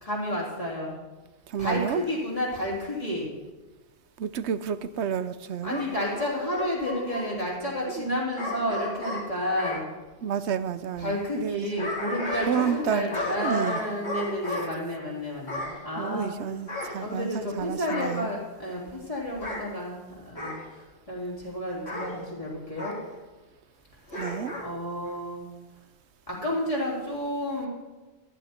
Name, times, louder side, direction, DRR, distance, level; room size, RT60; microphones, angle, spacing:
voice 1, 0.0-1.0 1.6-3.3 5.6-9.9 11.0-16.3 17.0-23.0 24.1-25.5 26.3-27.7, left 1 dB, 30° left, -5 dB, 3.5 m, -31 dB
voice 2, 1.5-2.0 4.2-5.8 7.9-8.0 10.2-11.9 12.5-13.1 13.4-13.8 16.0-18.3 24.2-24.5, right 8 dB, 90° right, 14 dB, 1.0 m, -30 dB
Bark / Growling, 5.7-7.3 8.4-9.8 11.4-12.8 13.1-14.7 15.5-15.8 16.7-17.5 17.9-18.2 19.3-19.6 20.4-20.6 21.9-22.1 22.8-23.0 24.1-24.7 25.0-25.1, left 2 dB, 80° left, 4.1 m, -34 dB
14.0 x 12.5 x 4.4 m, 1.2 s
omnidirectional pair, 1.1 m